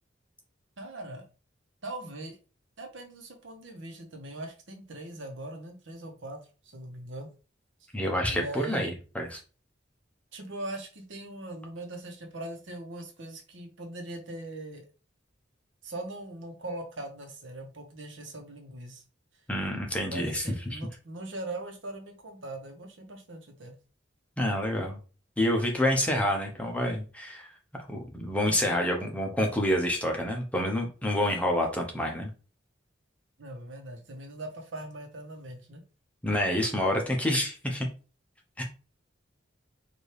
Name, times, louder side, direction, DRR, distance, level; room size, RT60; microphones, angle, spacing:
voice 1, 0.8-1.3 1.8-2.4 2.8-6.4 6.6-7.3 8.3-8.9 10.3-14.8 15.8-19.0 20.1-23.7 28.4-28.8 33.4-35.8, right 1 dB, 85° right, 4 dB, 1.0 m, -40 dB
voice 2, 7.9-9.4 19.5-20.4 20.7-20.8 24.4-25.0 25.4-27.5 27.9-32.3 36.2-37.9 38.6-38.7, left 1 dB, 5° left, 1 dB, 0.8 m, -28 dB
4.4 x 2.6 x 3.3 m, 0.34 s
head